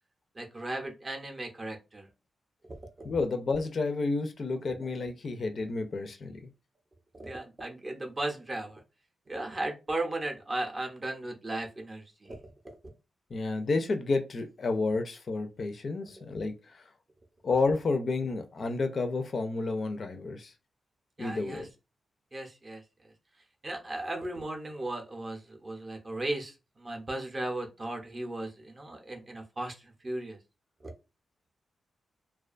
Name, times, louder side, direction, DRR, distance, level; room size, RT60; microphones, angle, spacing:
voice 1, 0.4-2.1 7.1-8.8 9.3-12.4 21.2-21.7 22.3-22.8 23.6-30.4 30.8-30.9, right 2 dB, 25° right, 0.5 m, -36 dB
voice 2, 3.0-6.4 13.3-16.8 17.4-20.5 21.2-21.7, left 3 dB, 45° left, 0.3 m, -30 dB
2.3 x 2.2 x 2.4 m
wide cardioid pair, 125°, 0 cm